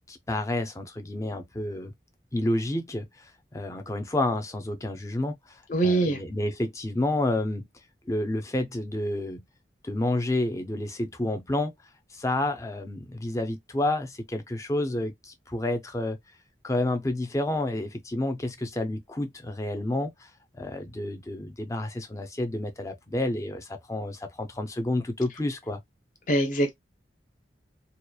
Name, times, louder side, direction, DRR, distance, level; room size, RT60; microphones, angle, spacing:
voice 1, 0.1-1.9 2.3-7.7 8.1-9.4 9.8-11.7 12.1-16.2 16.6-25.8, left 1 dB, 15° left, 0.5 m, -30 dB
voice 2, 5.7-6.2 26.3-26.7, right 2 dB, 45° left, 0.8 m, -23 dB
2.8 x 2.3 x 2.3 m
head